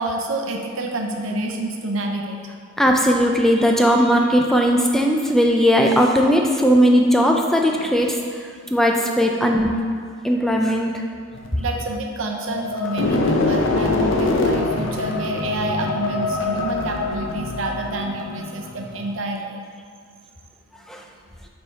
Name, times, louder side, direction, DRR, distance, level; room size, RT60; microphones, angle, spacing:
voice 1, 0.0-2.4 7.8-7.9 11.6-19.6, right 2 dB, 80° right, 2 dB, 0.7 m, -28 dB
voice 2, 2.8-8.2 8.7-9.8 10.2-10.9 20.9-21.0, equal, ahead, 1 dB, 0.3 m, -17 dB
sound 1, 11.3-19.1, left 3 dB, 70° left, 0.6 m, -24 dB
5.5 x 4.4 x 4.3 m, 2.1 s
head